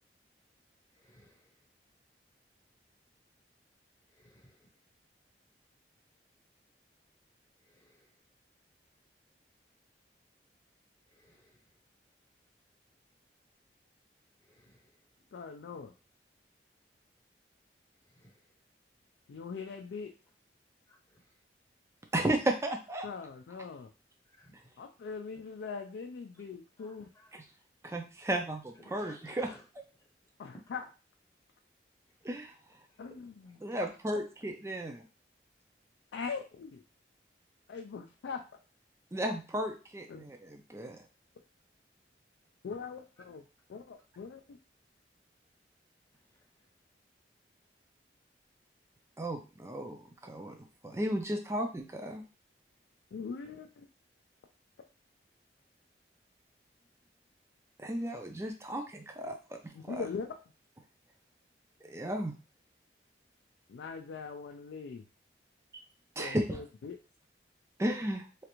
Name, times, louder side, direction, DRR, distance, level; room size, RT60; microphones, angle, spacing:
voice 1, 1.0-1.5 4.2-4.6 7.7-8.0 11.2-11.6 14.5-14.8 18.1-18.3 20.9-21.2 24.4-24.6 26.8-27.3 28.8-29.6, left 1 dB, 20° left, 0 dB, 0.7 m, -57 dB
voice 2, 15.3-15.9 19.3-20.1 23.0-23.9 24.8-27.1 30.4-30.8 33.0-33.6 36.1-36.8 37.7-38.4 40.1-40.2 42.6-43.4 43.7-44.6 53.1-53.9 59.7-60.3 63.7-65.0 66.2-67.0, left 5 dB, 85° left, 4 dB, 0.3 m, -41 dB
voice 3, 22.1-23.1 27.3-27.4 27.8-29.5 32.2-32.5 33.6-35.0 39.1-41.0 49.2-52.2 57.8-60.0 61.9-62.4 66.2-66.6 67.8-68.3, right 1 dB, 15° right, 4 dB, 0.4 m, -34 dB
3.2 x 2.5 x 2.9 m, 0.33 s
head